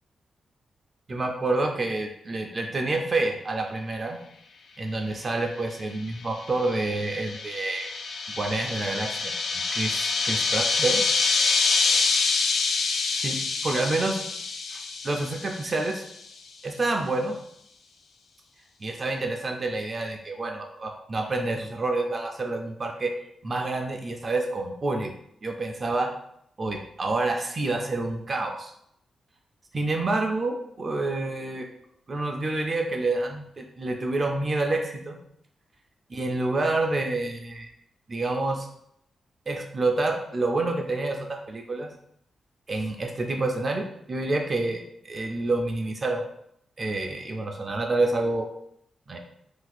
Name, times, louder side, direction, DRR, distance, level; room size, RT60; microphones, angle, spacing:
voice 1, 1.1-4.2 4.8-7.9 8.3-11.0 13.1-14.2 14.7-14.8 15.0-16.0 16.6-17.4 18.8-23.1 23.4-25.1 25.4-26.1 26.6-28.7 29.7-31.7 32.1-35.2 36.1-37.7 38.1-38.7 39.5-41.9 42.7-46.2 46.8-48.5 49.1-49.2, right 2 dB, 30° right, 2 dB, 0.3 m, -28 dB
sound 1, 6.2-16.0, left 4 dB, 75° left, 0.3 m, -26 dB
2.5 x 2.3 x 4.0 m, 0.73 s
wide cardioid pair, 150°, 0 cm